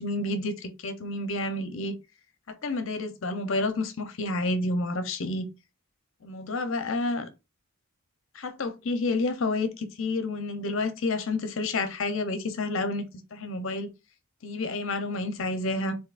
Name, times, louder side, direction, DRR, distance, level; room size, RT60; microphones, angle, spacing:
voice 1, 0.0-2.0 2.5-5.5 6.2-7.3 8.3-13.1 13.3-13.9 14.4-16.0, left 2 dB, 65° left, 0.7 m, -29 dB
7.0 x 2.7 x 2.4 m
head